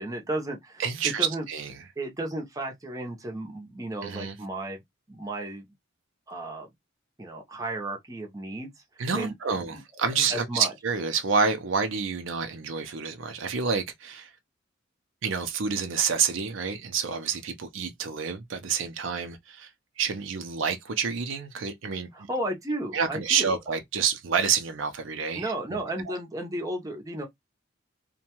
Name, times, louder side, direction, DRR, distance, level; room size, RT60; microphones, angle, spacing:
voice 1, 0.0-1.5 2.0-4.8 5.1-5.7 6.3-6.7 7.2-8.7 9.1-10.7 22.1-23.6 25.3-27.2, right 1 dB, 20° right, 0.7 m, -34 dB
voice 2, 0.8-1.8 4.0-4.4 9.0-14.3 15.2-19.7 20.0-22.3 22.9-25.8 26.1-26.2, right 6 dB, 75° right, 0.5 m, -28 dB
2.7 x 2.2 x 2.8 m
head